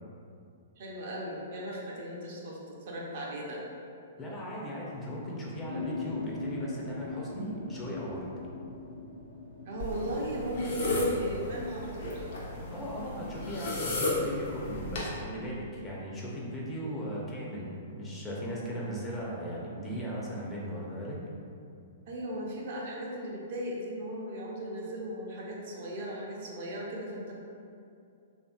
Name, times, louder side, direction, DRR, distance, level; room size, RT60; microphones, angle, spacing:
voice 1, 0.8-3.6 9.6-12.2 22.1-27.3, right 1 dB, 50° right, -3 dB, 0.6 m, -37 dB
voice 2, 4.2-8.3 12.7-21.2, equal, 15° left, -5 dB, 0.6 m, -37 dB
sound 1, 5.6-13.1, left 3 dB, 90° left, 1.0 m, -42 dB
sound 2, 9.8-15.1, left 2 dB, 55° left, 0.7 m, -34 dB
3.4 x 2.5 x 2.3 m, 2.4 s
figure-of-eight pair, 110°, 0 cm